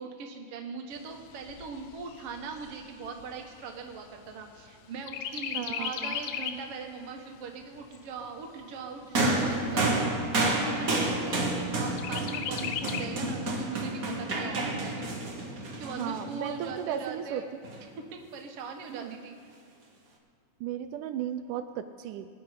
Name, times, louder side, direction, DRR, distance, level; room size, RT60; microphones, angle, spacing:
voice 1, 0.0-15.2 15.6-17.5 18.0-19.4, right 4 dB, 55° right, 3 dB, 2.0 m, -41 dB
Chirp tweet, 0.9-4.7 5.1-6.7 7.2-7.3 7.6-8.6 9.2-9.3 9.7-9.8 10.2-10.7 12.0-13.1, left 9 dB, 80° left, 2.2 m, -37 dB
voice 2, 5.5-6.2 15.7-17.4 18.9-19.2 20.6-22.3, right 10 dB, 85° right, 8 dB, 2.1 m, -35 dB
sound 1, 9.1-16.7 17.6-17.8, right 2 dB, 40° right, 1.3 m, -29 dB
22.5 x 9.7 x 5.0 m, 2.2 s
omnidirectional pair, 3.6 m